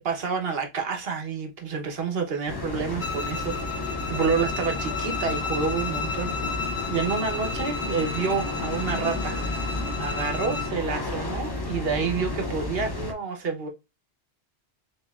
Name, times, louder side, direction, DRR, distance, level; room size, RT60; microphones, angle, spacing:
voice 1, 0.0-9.4 10.0-13.7, right 5 dB, 60° right, 1.2 m, -29 dB
sound 1, 2.5-13.1, left 2 dB, 25° left, 0.8 m, -32 dB
Bowed string instrument, 3.0-10.8, left 4 dB, 65° left, 1.1 m, -33 dB
6.3 x 2.9 x 2.3 m
omnidirectional pair, 1.1 m